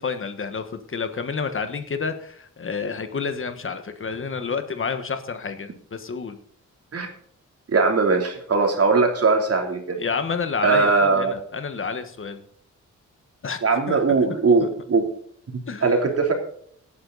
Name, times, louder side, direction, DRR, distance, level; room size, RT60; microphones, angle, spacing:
voice 1, 0.0-6.4 10.0-12.4 13.4-14.0 15.7-15.9, left 5 dB, 45° left, 9 dB, 1.4 m, -29 dB
voice 2, 7.7-10.0 10.6-11.4 13.6-15.1 15.8-16.3, right 4 dB, 50° right, 3 dB, 3.2 m, -20 dB
18.0 x 9.9 x 4.1 m, 0.63 s
wide cardioid pair, 135°, 30 cm